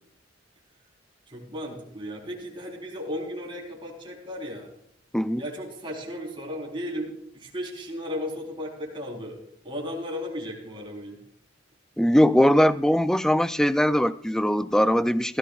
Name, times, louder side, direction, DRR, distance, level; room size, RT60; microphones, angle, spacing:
voice 1, 1.3-4.7 5.4-9.4 9.6-11.2, equal, 25° right, -1 dB, 3.9 m, -35 dB
voice 2, 12.0-15.4, equal, 5° left, 13 dB, 0.4 m, -21 dB
20.5 x 14.5 x 2.4 m, 0.71 s
head